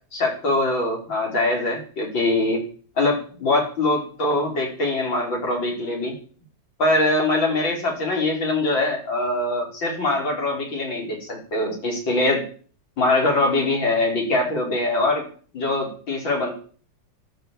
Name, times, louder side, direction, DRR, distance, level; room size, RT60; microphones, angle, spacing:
voice 1, 0.1-2.6 3.0-6.1 6.8-12.4 13.0-15.3 15.5-16.5, left 2 dB, 70° left, 1 dB, 6.0 m, -23 dB
13.0 x 13.0 x 7.7 m, 0.42 s
omnidirectional pair, 2.1 m